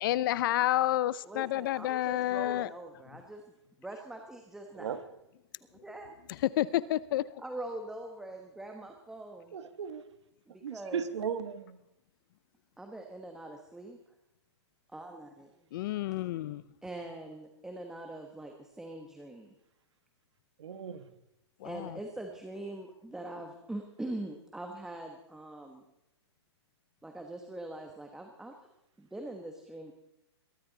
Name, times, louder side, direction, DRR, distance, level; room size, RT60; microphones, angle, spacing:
voice 1, 0.0-2.7 6.3-7.2 15.7-16.6 21.6-22.0, left 14 dB, 50° left, 0.6 m, -29 dB
voice 2, 1.2-3.4 3.8-4.9 5.8-6.2 7.4-9.6 10.5-11.1 12.8-14.0 14.9-15.5 16.8-19.5 21.6-25.8 27.0-28.5 29.0-29.9, right 1 dB, 5° right, 1.2 m, -43 dB
voice 3, 9.5-10.0 10.6-11.8 20.6-21.1, right 7 dB, 80° right, 1.5 m, -36 dB
21.5 x 14.0 x 4.0 m
hypercardioid pair, 145°, 15 cm